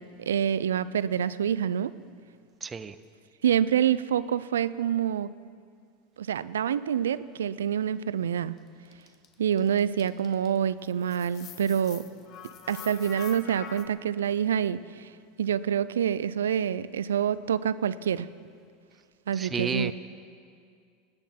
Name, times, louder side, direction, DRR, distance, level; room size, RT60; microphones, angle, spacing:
voice 1, 0.0-2.0 3.4-5.3 6.2-8.6 9.4-12.0 12.7-15.1 15.4-18.3 19.3-19.9, right 9 dB, 90° right, 17 dB, 0.4 m, -27 dB
voice 2, 2.6-2.9 19.4-19.9, right 5 dB, 25° right, 12 dB, 0.6 m, -31 dB
sound 1, 8.9-10.6 10.9-13.9, left 8 dB, 45° left, 1.0 m, -44 dB
17.5 x 9.8 x 5.9 m, 2.2 s
hypercardioid pair, 100°, 0 cm